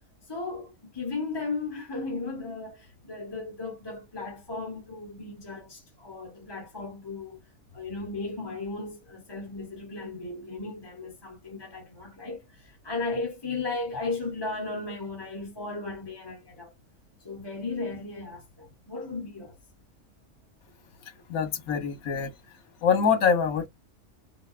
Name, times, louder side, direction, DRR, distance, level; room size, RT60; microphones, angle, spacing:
voice 1, 0.3-16.7 17.2-19.6, left 3 dB, 20° left, 1.0 m, -36 dB
voice 2, 21.3-22.3 22.8-23.7, left 6 dB, 85° left, 1.4 m, -24 dB
4.0 x 2.8 x 2.4 m
omnidirectional pair, 1.5 m